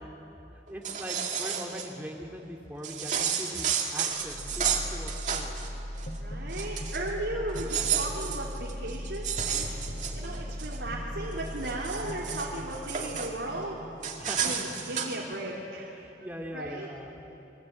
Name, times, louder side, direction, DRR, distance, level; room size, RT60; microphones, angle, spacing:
voice 1, 0.5-5.7 10.0-10.5 14.2-14.8 15.9-17.2, equal, 10° right, 1 dB, 2.4 m, -41 dB
sound 1, 0.7-1.9 2.8-5.7 6.0-6.2 6.5-7.1 7.5-10.8 11.3-13.3 14.0-15.2, right 7 dB, 45° right, 2.5 m, -32 dB
sound 2, 4.2-16.1, equal, 55° left, 2.4 m, -39 dB
voice 2, 6.2-9.9 10.1-13.8 14.4-16.0 16.5-16.9, right 1 dB, 90° right, -4 dB, 3.3 m, -36 dB
28.5 x 22.5 x 8.9 m, 2.9 s
head